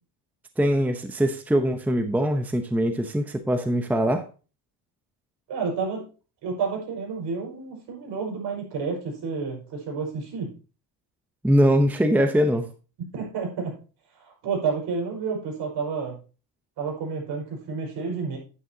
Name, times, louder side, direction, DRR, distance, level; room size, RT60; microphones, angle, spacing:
voice 1, 0.6-4.3 11.4-12.7, equal, 5° right, 7 dB, 0.8 m, -22 dB
voice 2, 5.5-6.1 6.4-10.5 13.1-13.7 14.2-16.2 16.8-18.4, right 5 dB, 65° right, 0 dB, 5.7 m, -30 dB
10.5 x 9.4 x 2.8 m, 0.34 s
cardioid pair, 135°, 44 cm